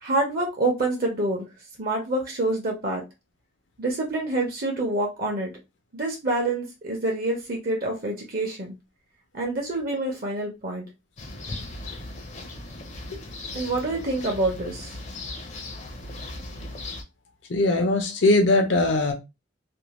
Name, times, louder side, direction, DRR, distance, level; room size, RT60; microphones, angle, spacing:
voice 1, 0.0-1.5 1.8-3.0 3.8-5.5 5.9-8.7 9.3-10.9 13.5-15.0, right 2 dB, 50° right, 0.7 m, -27 dB
sound 1, 11.2-17.0, left 2 dB, 35° left, 0.5 m, -37 dB
voice 2, 17.5-19.1, left 2 dB, 75° left, 0.7 m, -20 dB
2.6 x 2.1 x 2.9 m
head